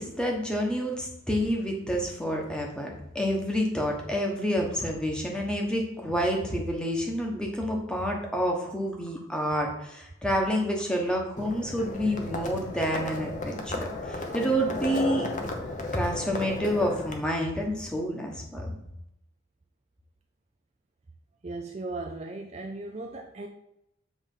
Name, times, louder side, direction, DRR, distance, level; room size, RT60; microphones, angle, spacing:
voice 1, 0.0-15.3 15.9-18.8, equal, 5° left, 0 dB, 1.1 m, -28 dB
Livestock farm animals working animals, 11.4-17.1, left 2 dB, 35° left, 0.8 m, -34 dB
voice 2, 21.4-23.5, right 2 dB, 30° right, 3 dB, 0.4 m, -37 dB
7.3 x 3.5 x 5.4 m, 0.82 s
head